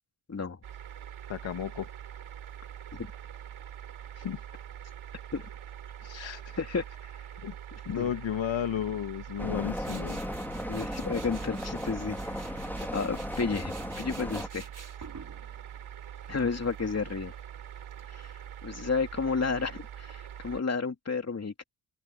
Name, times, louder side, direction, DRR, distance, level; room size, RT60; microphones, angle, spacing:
sound 1, 0.6-20.6, right 10 dB, 75° right, 4.3 m, -44 dB
voice 1, 1.3-1.9 4.2-4.4 6.0-6.6 7.4-7.5 7.9-10.2, left 9 dB, 65° left, 1.9 m, -33 dB
sound 2, 9.4-14.5, left 1 dB, 5° left, 2.2 m, -36 dB
Tools, 9.8-18.6, right 5 dB, 40° right, 5.5 m, -51 dB
voice 2, 10.7-12.3 12.9-14.7 16.3-17.3 18.1-18.3 18.6-21.6, left 4 dB, 30° left, 3.1 m, -31 dB
open air
cardioid pair, 85°, 48 cm